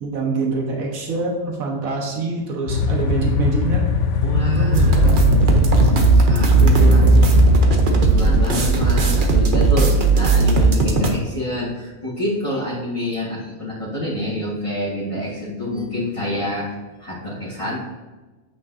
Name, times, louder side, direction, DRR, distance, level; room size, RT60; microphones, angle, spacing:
voice 1, 0.0-3.9 4.4-5.7 6.6-7.4, right 3 dB, 75° right, -1 dB, 1.7 m, -25 dB
sound 1, 2.7-8.0, left 5 dB, 65° left, 1.0 m, -20 dB
voice 2, 4.2-5.1 6.2-7.2 7.5-17.8, left 1 dB, 25° left, -10 dB, 1.6 m, -27 dB
sound 2, 4.7-11.1, right 3 dB, 45° right, 0.9 m, -15 dB
8.3 x 6.0 x 2.7 m, 1.2 s
omnidirectional pair, 1.5 m